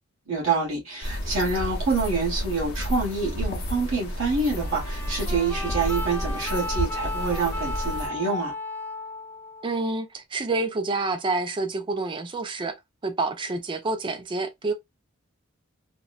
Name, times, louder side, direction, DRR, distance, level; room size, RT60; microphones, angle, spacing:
voice 1, 0.3-8.5, right 4 dB, 70° right, 1.2 m, -27 dB
At the River, 1.0-8.1, equal, 50° left, 0.6 m, -31 dB
sound 1, 4.5-10.0, left 2 dB, 10° left, 0.7 m, -35 dB
voice 2, 9.6-12.8 13.0-14.7, right 3 dB, 25° right, 0.3 m, -28 dB
2.9 x 2.0 x 2.3 m
head